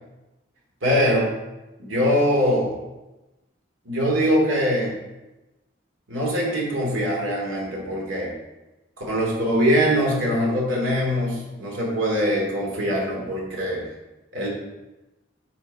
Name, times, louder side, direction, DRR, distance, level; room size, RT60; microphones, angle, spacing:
voice 1, 0.8-1.3 1.8-2.7 3.9-4.9 6.1-8.3 9.1-13.8 14.3-14.5, equal, 85° right, -2 dB, 2.5 m, -22 dB
10.0 x 4.6 x 4.2 m, 1.0 s
head